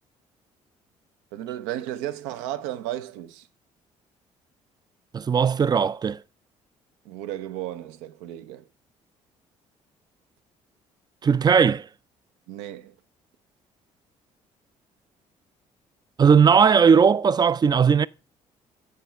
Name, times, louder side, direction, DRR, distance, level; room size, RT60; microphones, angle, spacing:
voice 1, 1.3-3.5 7.0-8.7 12.5-12.9, right 13 dB, 80° right, 0.6 m, -34 dB
voice 2, 5.1-6.2 11.2-11.9 16.2-18.1, right 6 dB, 25° right, 0.4 m, -18 dB
8.3 x 4.6 x 5.5 m
hypercardioid pair, 55°, 16 cm